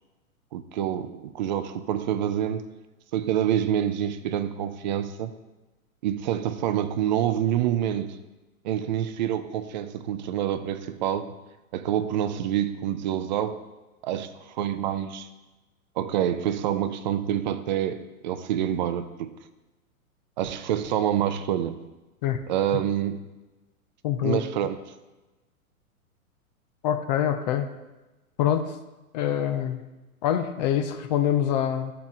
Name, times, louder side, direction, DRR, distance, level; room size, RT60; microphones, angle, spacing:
voice 1, 0.5-2.7 3.1-5.3 6.0-8.2 8.6-11.4 11.7-13.6 14.0-15.3 16.0-19.3 20.4-21.8 22.5-23.2 24.2-24.8, right 10 dB, 35° right, 11 dB, 0.4 m, -27 dB
voice 2, 24.0-24.4 26.8-27.7 28.4-28.7 29.1-29.8 30.2-31.9, left 10 dB, 30° left, 8 dB, 0.5 m, -25 dB
11.5 x 4.5 x 3.7 m, 1.1 s
hypercardioid pair, 120°, 44 cm